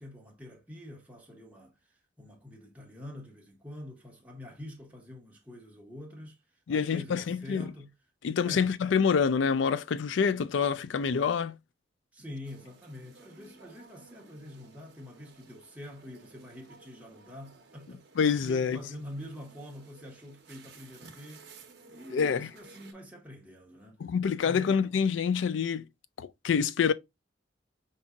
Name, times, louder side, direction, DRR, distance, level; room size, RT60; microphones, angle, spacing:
voice 1, 0.0-7.9 8.4-8.7 12.1-18.1 18.4-21.6 21.9-24.0 24.4-24.9, left 1 dB, 10° right, 1.2 m, -46 dB
voice 2, 6.7-7.7 8.2-11.6 18.2-18.8 22.1-22.5 24.0-25.9 26.2-26.9, left 6 dB, 75° left, 0.4 m, -27 dB
sound 1, 12.4-22.9, right 4 dB, 60° right, 0.9 m, -55 dB
5.3 x 2.6 x 2.3 m
head